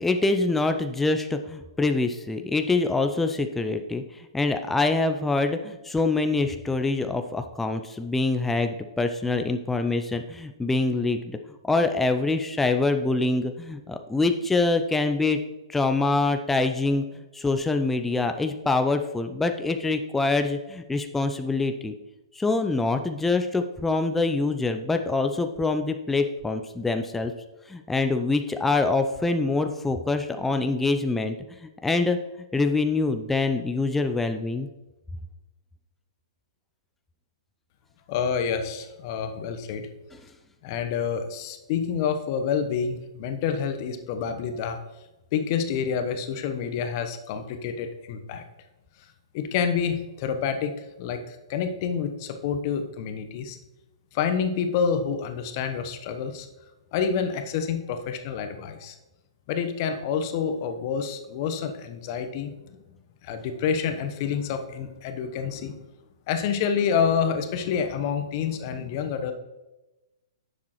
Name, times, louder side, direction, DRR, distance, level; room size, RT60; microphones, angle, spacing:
voice 1, 0.0-11.4 11.6-15.4 15.7-17.0 17.3-21.9 22.3-27.3 27.7-31.4 31.6-32.2 32.5-34.7, left 3 dB, 5° left, 7 dB, 0.5 m, -25 dB
voice 2, 38.1-39.9 40.6-44.8 45.3-48.4 49.3-53.6 54.1-56.5 56.9-59.0 59.5-62.8 63.2-65.8 66.3-69.3, left 7 dB, 40° left, 7 dB, 1.0 m, -28 dB
10.5 x 7.3 x 3.1 m, 1.0 s
figure-of-eight pair, 120°, 3 cm